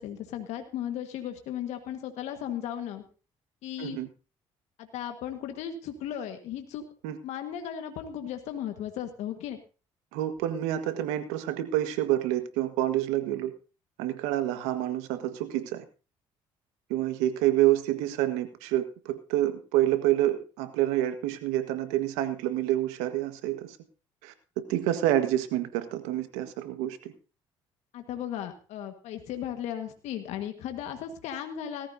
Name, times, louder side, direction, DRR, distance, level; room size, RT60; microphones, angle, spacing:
voice 1, 0.0-3.0 3.6-4.0 4.8-6.8 7.2-9.6 27.9-31.9, left 10 dB, 75° left, 5 dB, 1.6 m, -36 dB
voice 2, 10.1-13.5 14.0-15.8 16.9-23.8 24.2-24.3 24.7-27.1, right 13 dB, 85° right, 9 dB, 1.5 m, -28 dB
18.0 x 14.5 x 2.8 m, 0.34 s
supercardioid pair, 70°, 12 cm